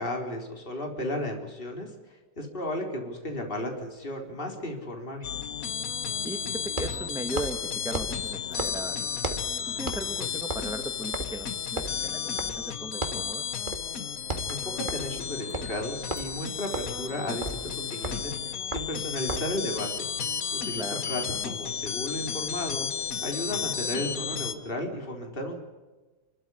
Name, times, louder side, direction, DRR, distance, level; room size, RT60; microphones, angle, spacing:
voice 1, 0.0-5.3 14.5-20.1 20.5-22.9 23.2-25.5, left 1 dB, 30° left, 3 dB, 4.0 m, -34 dB
sound 1, 3.4-3.5 6.7-9.6 9.9-10.2 10.4-12.8 13.0-13.3 13.7-13.9 14.2-19.6, right 2 dB, 30° right, 1.9 m, -36 dB
sound 2, 5.2-24.5, left 7 dB, 55° left, 1.5 m, -33 dB
voice 2, 6.2-9.1 9.7-13.5 20.7-21.0, right 1 dB, ahead, 6 dB, 1.2 m, -37 dB
28.0 x 13.5 x 9.9 m, 1.2 s
omnidirectional pair, 1.9 m